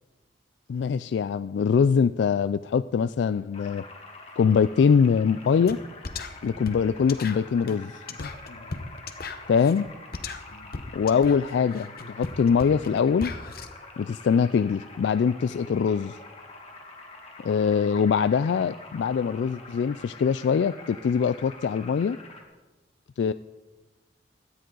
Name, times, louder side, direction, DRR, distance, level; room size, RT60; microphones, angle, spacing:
voice 1, 0.7-3.8 4.4-5.8 6.4-8.3 9.5-9.9 10.9-13.3 14.0-16.2 17.4-22.2 23.2-23.3, left 6 dB, 75° left, 14 dB, 0.3 m, -23 dB
sound 1, 3.5-22.4, left 3 dB, 35° left, 1.8 m, -46 dB
sound 2, 5.7-5.8 6.0-13.7, left 3 dB, 55° left, 0.9 m, -37 dB
17.0 x 12.5 x 3.9 m, 1.2 s
head